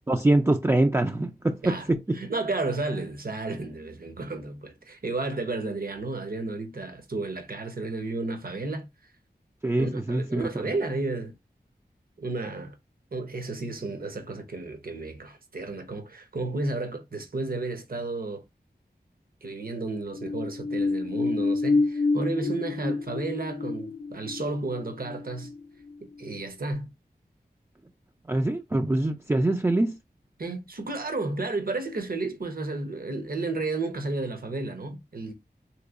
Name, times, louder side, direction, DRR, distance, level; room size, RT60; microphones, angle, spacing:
voice 1, 0.1-2.2 9.6-10.4 28.3-30.0, right 2 dB, 15° right, 0.3 m, -24 dB
voice 2, 2.1-8.9 9.8-11.3 12.2-12.7 13.1-18.4 19.4-25.5 26.2-26.9 30.4-35.3, right 3 dB, 60° right, 0.8 m, -32 dB
sound 1, 20.0-26.3 26.7-26.8, left 3 dB, 85° left, 0.5 m, -29 dB
3.4 x 3.0 x 2.4 m
wide cardioid pair, 65°, 17 cm